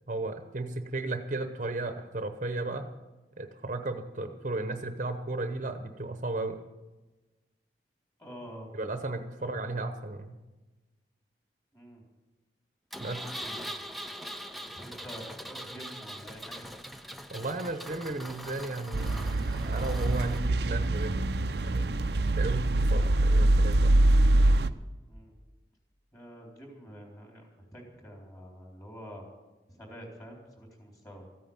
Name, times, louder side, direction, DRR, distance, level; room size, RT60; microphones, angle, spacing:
voice 1, 0.0-2.9 3.4-6.6 8.7-10.4 13.0-13.2 17.3-21.4 21.6-22.0 22.4-24.0, right 2 dB, 45° right, 7 dB, 0.9 m, -35 dB
voice 2, 8.2-8.7 9.4-9.5 11.7-12.0 13.4-16.7 25.1-25.3 26.1-29.2 29.8-31.3, equal, 20° left, 0 dB, 3.7 m, -47 dB
Engine, 12.9-20.4, equal, ahead, 0.6 m, -42 dB
sound 1, 18.9-24.7, right 1 dB, 65° right, 0.6 m, -24 dB
14.5 x 9.3 x 8.7 m, 1.2 s
head